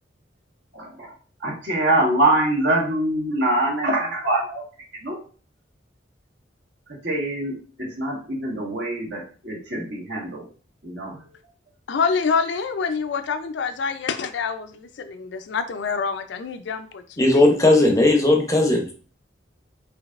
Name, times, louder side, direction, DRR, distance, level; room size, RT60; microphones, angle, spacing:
voice 1, 0.7-1.1 1.4-4.6 5.0-5.2 6.9-10.5 10.8-11.2, right 1 dB, 65° right, 1.5 m, -24 dB
voice 2, 11.9-17.4, left 5 dB, 70° left, 0.4 m, -26 dB
voice 3, 17.2-18.9, left 2 dB, 15° left, 0.6 m, -17 dB
5.1 x 2.8 x 2.4 m
head